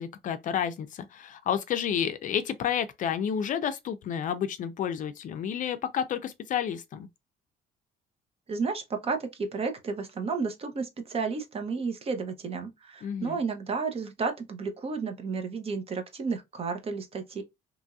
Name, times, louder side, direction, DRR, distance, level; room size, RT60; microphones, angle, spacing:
voice 1, 0.0-7.1 13.0-13.4, left 8 dB, 50° left, 0.4 m, -30 dB
voice 2, 8.5-17.4, right 4 dB, 35° right, 0.7 m, -32 dB
3.0 x 2.6 x 2.3 m
cardioid pair, 110°, 17 cm